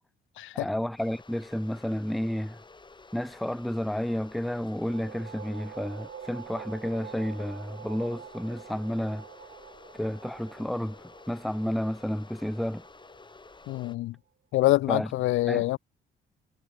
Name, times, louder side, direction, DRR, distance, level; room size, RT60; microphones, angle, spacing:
voice 1, 0.6-2.6 3.1-9.2 9.9-11.0 11.3-12.8 14.9-15.1 15.5-15.6, left 1 dB, ahead, 0.4 m, -31 dB
sound 1, 1.0-14.0, left 3 dB, 25° left, 2.6 m, -51 dB
sound 2, 4.6-14.0, right 10 dB, 60° right, 2.6 m, -47 dB
voice 2, 13.7-14.2 14.5-15.8, left 17 dB, 85° left, 0.5 m, -25 dB
cardioid pair, 90°, 20 cm